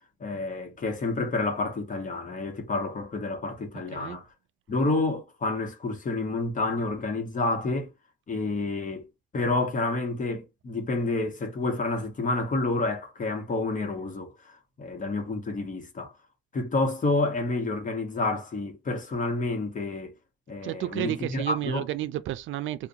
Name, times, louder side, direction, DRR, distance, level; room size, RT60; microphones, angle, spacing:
voice 1, 0.2-4.3 4.7-7.9 8.3-9.0 9.3-16.1 16.5-20.1 20.5-21.9, left 2 dB, 40° left, 1.3 m, -29 dB
voice 2, 20.6-22.9, right 14 dB, 75° right, 0.4 m, -31 dB
3.7 x 2.5 x 2.7 m
cardioid pair, 90°, 20 cm